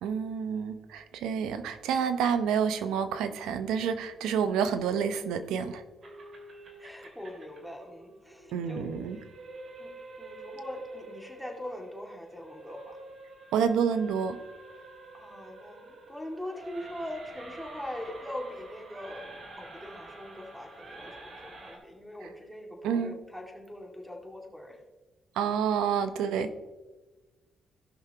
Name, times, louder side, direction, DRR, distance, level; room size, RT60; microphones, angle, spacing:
voice 1, 0.0-5.8 8.5-9.2 13.5-14.4 22.2-22.3 22.8-23.2 25.4-26.5, right 7 dB, 90° right, 10 dB, 0.7 m, -28 dB
sound 1, 6.0-21.8, right 2 dB, 50° right, 2.5 m, -48 dB
voice 2, 6.8-8.9 9.8-9.9 10.2-13.0 15.1-19.3 19.6-24.8, left 1 dB, ahead, 1 dB, 2.1 m, -42 dB
17.0 x 6.0 x 2.9 m, 1.2 s
cardioid pair, 90°, 0 cm